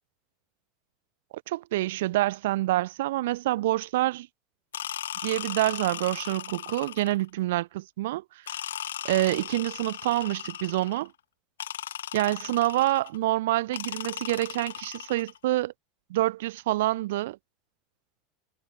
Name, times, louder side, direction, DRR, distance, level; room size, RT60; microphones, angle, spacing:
voice 1, 1.5-4.3 5.2-8.2 9.0-11.1 12.1-15.7 16.1-17.4, right 16 dB, 70° right, 3.3 m, -27 dB
sound 1, 4.7-7.3 8.5-11.1 11.6-13.2 13.7-15.4, left 10 dB, 80° left, 6.1 m, -37 dB
hypercardioid pair, 85°, 0 cm